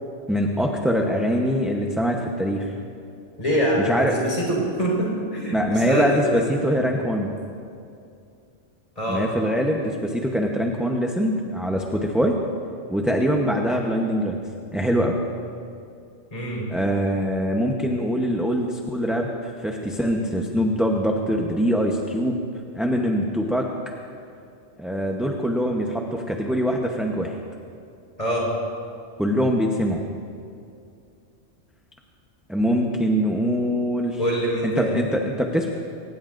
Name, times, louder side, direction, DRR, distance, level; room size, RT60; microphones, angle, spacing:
voice 1, 0.3-2.7 3.8-4.1 5.5-7.3 9.1-12.4 12.9-14.4 14.7-15.2 16.7-22.4 22.7-23.7 24.8-27.4 29.2-30.0 32.5-34.2 34.6-35.7, equal, ahead, 0 dB, 0.8 m, -23 dB
voice 2, 3.4-6.8 9.0-9.2 16.3-16.6 28.2-28.5 34.2-35.0, equal, 30° left, -4 dB, 4.7 m, -25 dB
23.5 x 19.5 x 2.6 m, 2.5 s
omnidirectional pair, 1.2 m